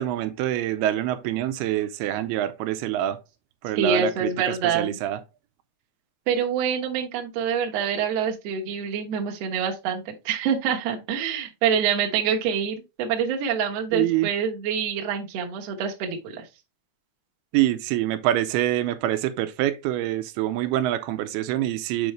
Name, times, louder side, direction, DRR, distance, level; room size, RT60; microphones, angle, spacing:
voice 1, 0.0-3.2 3.6-5.2 13.9-14.3 17.5-22.1, right 13 dB, 85° right, 2.6 m, -25 dB
voice 2, 3.8-5.0 6.3-16.5, right 7 dB, 60° right, 1.8 m, -26 dB
7.0 x 5.2 x 3.1 m
omnidirectional pair, 4.5 m